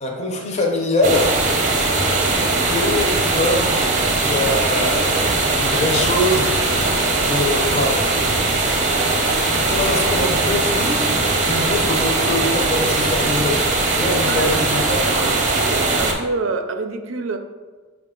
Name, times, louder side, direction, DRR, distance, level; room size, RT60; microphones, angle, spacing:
voice 1, 0.0-1.3 2.6-6.8 7.2-8.0 9.7-15.1, left 2 dB, 35° left, 0.6 m, -23 dB
sound 1, 1.0-16.1, right 2 dB, 40° right, 0.6 m, -20 dB
voice 2, 14.1-14.6 15.0-17.4, right 3 dB, 85° right, 0.4 m, -27 dB
5.7 x 2.4 x 3.7 m
head